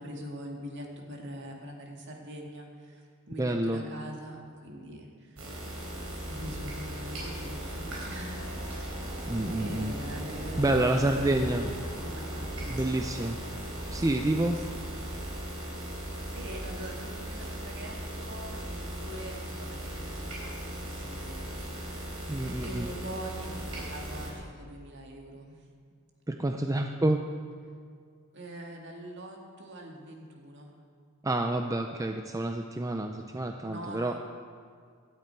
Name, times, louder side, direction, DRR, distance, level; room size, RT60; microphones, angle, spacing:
voice 1, 0.0-5.5 6.3-9.0 9.5-11.6 11.9-13.3 14.0-15.4 16.3-22.2 22.6-25.7 26.4-26.6 28.3-30.8 33.6-34.2, right 1 dB, 55° right, 0 dB, 2.2 m, -43 dB
voice 2, 3.4-3.8 9.3-9.9 10.6-11.7 12.7-13.4 13.9-14.6 22.3-22.9 26.3-27.2 31.2-34.1, right 1 dB, 15° right, 4 dB, 0.5 m, -28 dB
sound 1, 5.4-24.3, right 1 dB, 85° right, 4.0 m, -37 dB
16.5 x 12.5 x 4.7 m, 2.1 s
head